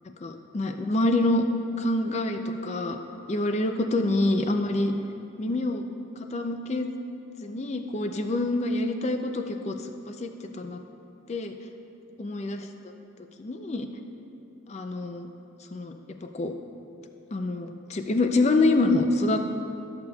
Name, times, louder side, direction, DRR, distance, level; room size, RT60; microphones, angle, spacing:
voice 1, 0.0-1.4 1.8-3.0 3.3-4.9 5.4-5.8 6.3-10.8 11.3-11.5 12.2-12.6 13.4-13.9 14.7-15.3 15.7-15.9 16.3-16.5 17.3-19.4, left 2 dB, 35° left, 6 dB, 0.4 m, -26 dB
13.5 x 6.8 x 2.3 m, 2.7 s
head